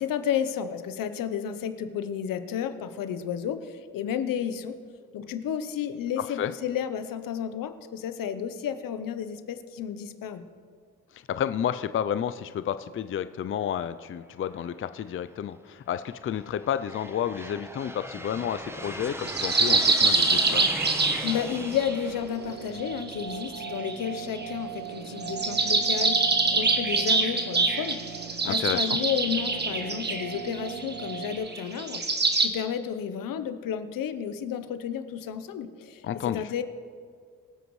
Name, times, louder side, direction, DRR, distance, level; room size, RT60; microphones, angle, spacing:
voice 1, 0.0-4.7 5.1-10.4 21.2-26.2 26.5-28.0 28.4-32.0 32.4-36.0 36.3-36.6, left 8 dB, 75° left, 10 dB, 0.9 m, -32 dB
voice 2, 6.2-6.5 11.1-20.7 28.4-29.0 36.0-36.5, left 9 dB, 40° left, 12 dB, 0.4 m, -31 dB
Aircraft, 14.5-15.1 15.8-23.4, right 1 dB, 5° right, 0.9 m, -39 dB
sound 1, 19.3-22.0 22.7-24.5 25.2-32.5, right 3 dB, 30° right, 1.4 m, -25 dB
sound 2, 22.0-31.4, right 10 dB, 75° right, 1.0 m, -39 dB
24.0 x 8.0 x 3.2 m, 2.1 s
cardioid pair, 70°, 33 cm